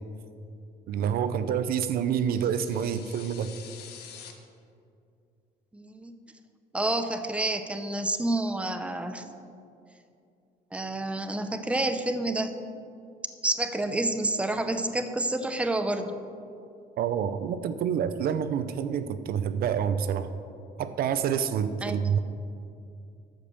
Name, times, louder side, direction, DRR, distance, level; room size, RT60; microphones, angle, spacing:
voice 1, 0.9-3.5 17.0-20.3 20.8-22.2, right 8 dB, 65° right, 12 dB, 0.6 m, -27 dB
sound 1, 2.2-4.3, left 8 dB, 75° left, 1.3 m, -47 dB
voice 2, 5.7-6.1 6.7-9.2 10.7-12.6 13.4-16.1 21.8-22.1, right 2 dB, 5° right, 8 dB, 0.7 m, -29 dB
12.5 x 5.1 x 6.9 m, 2.5 s
cardioid pair, 110°, 17 cm